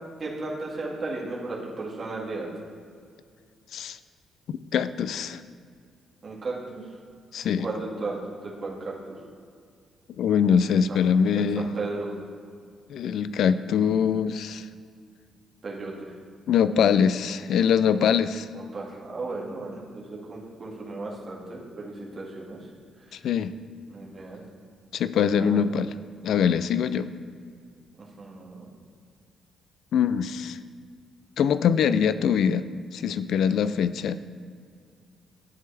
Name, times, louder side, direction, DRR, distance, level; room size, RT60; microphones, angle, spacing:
voice 1, 0.2-2.5 6.2-6.8 7.6-9.2 10.9-11.0 11.3-12.2 15.6-15.9 18.5-22.6 23.9-24.4 25.4-25.6 28.0-28.7, right 3 dB, 40° right, -4 dB, 2.0 m, -35 dB
voice 2, 4.7-5.4 7.3-7.7 10.2-11.7 12.9-14.7 16.5-18.5 23.1-23.5 24.9-25.9 26.2-27.1 29.9-30.6 31.4-32.6 32.9-34.2, left 7 dB, 70° left, 14 dB, 0.4 m, -23 dB
10.5 x 7.8 x 3.4 m, 2.2 s
cardioid pair, 90°, 0 cm